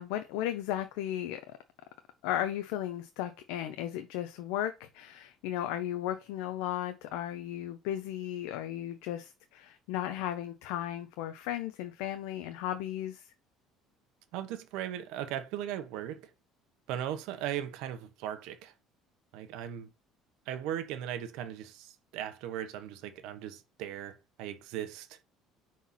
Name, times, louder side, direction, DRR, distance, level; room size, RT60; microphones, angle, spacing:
voice 1, 0.0-1.4 2.2-13.3, left 12 dB, 90° left, 0.8 m, -35 dB
voice 2, 14.3-16.3 16.9-18.7 19.3-19.9 20.5-25.2, right 10 dB, 75° right, 1.3 m, -38 dB
5.7 x 4.6 x 5.8 m
cardioid pair, 145°, 0 cm